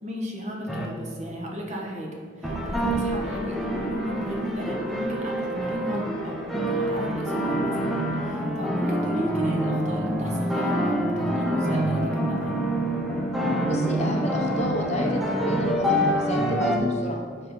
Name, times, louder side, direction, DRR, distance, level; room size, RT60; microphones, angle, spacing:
voice 1, 0.0-12.6, equal, 40° right, -1 dB, 1.1 m, -33 dB
sound 1, 0.7-0.9 2.4-16.8, right 1 dB, ahead, 0.6 m, -26 dB
voice 2, 13.6-17.2, left 1 dB, 40° left, 1 dB, 0.8 m, -30 dB
6.2 x 3.8 x 5.3 m, 2.1 s
head